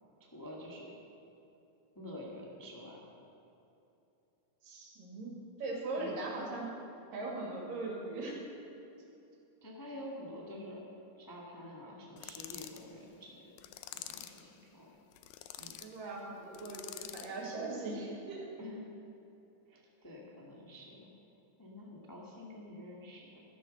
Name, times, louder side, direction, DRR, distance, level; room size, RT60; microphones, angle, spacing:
voice 1, 0.2-0.9 1.9-3.0 5.9-6.2 9.6-10.8 11.2-13.5 13.9-14.9 15.6-15.8 18.6-18.9 19.7-21.1 21.6-23.4, left 1 dB, 15° left, -3 dB, 0.7 m, -48 dB
voice 2, 4.6-6.7 7.1-8.4 15.8-18.5, right 2 dB, 85° right, -2 dB, 4.0 m, -40 dB
sound 1, 12.2-12.8 13.6-14.4 15.1-15.9 16.5-17.4, left 12 dB, 90° left, 2.3 m, -46 dB
13.0 x 10.5 x 6.4 m, 2.9 s
omnidirectional pair, 3.8 m